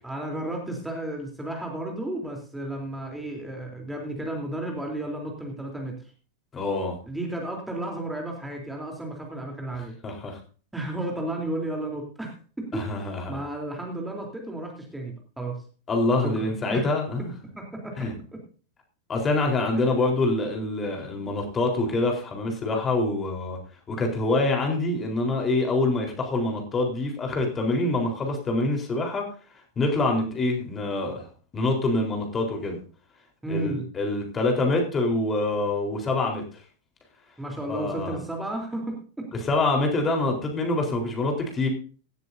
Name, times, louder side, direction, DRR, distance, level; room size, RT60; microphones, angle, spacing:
voice 1, 0.0-6.0 7.1-10.0 10.7-15.6 16.2-16.9 17.6-18.4 19.7-19.8 33.4-33.9 37.4-39.3, right 1 dB, 5° right, 1 dB, 3.5 m, -33 dB
voice 2, 6.5-7.0 10.0-10.4 12.7-13.4 15.9-17.3 18.0-18.1 19.1-23.6 23.9-29.3 29.8-31.3 31.5-32.8 33.5-36.4 37.7-38.2 39.4-41.7, left 2 dB, 20° left, 2 dB, 4.1 m, -25 dB
17.0 x 13.5 x 2.7 m, 0.40 s
figure-of-eight pair, 90°, 0 cm